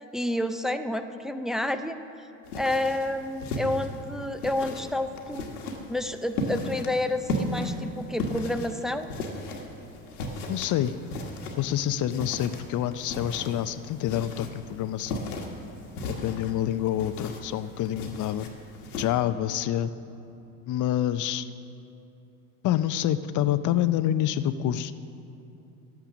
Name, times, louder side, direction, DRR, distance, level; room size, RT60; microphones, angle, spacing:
voice 1, 0.1-2.0 2.5-5.5 5.9-9.1, left 1 dB, ahead, 8 dB, 0.5 m, -29 dB
sound 1, 2.5-19.0, left 1 dB, 90° left, 1.5 m, -36 dB
voice 2, 10.5-10.9 11.6-15.2 16.1-18.5 19.0-19.9 20.7-21.5 22.6-24.9, left 11 dB, 45° left, 13 dB, 0.6 m, -27 dB
11.5 x 9.2 x 6.1 m, 2.9 s
hypercardioid pair, 80°, 43 cm